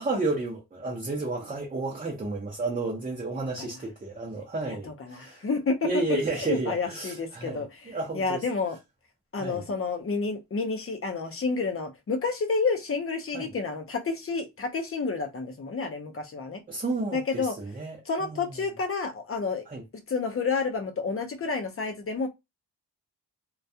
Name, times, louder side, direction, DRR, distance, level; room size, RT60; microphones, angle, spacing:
voice 1, 0.0-5.4 5.8-8.4 9.4-9.6 13.3-13.5 16.7-18.5 19.7-19.8, right 3 dB, 20° right, 0.6 m, -32 dB
voice 2, 4.7-6.0 6.4-8.8 9.3-16.6 17.1-17.6 18.1-19.6 20.1-22.3, left 4 dB, 30° left, 0.6 m, -30 dB
2.2 x 2.2 x 2.6 m
wide cardioid pair, 140°, 42 cm